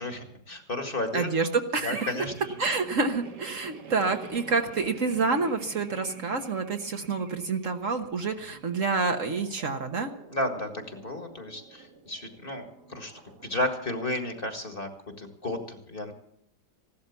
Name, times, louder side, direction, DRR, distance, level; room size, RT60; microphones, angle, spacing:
voice 1, 0.0-1.5 1.8-2.6 10.3-13.1 13.4-14.9 15.2-16.1, left 1 dB, 35° left, 5 dB, 1.9 m, -33 dB
voice 2, 1.1-2.1 2.6-10.1, right 4 dB, 55° right, 5 dB, 1.5 m, -28 dB
sound 1, 1.6-13.6, right 4 dB, 85° right, 2.2 m, -48 dB
16.0 x 12.0 x 7.1 m, 0.73 s
omnidirectional pair, 1.8 m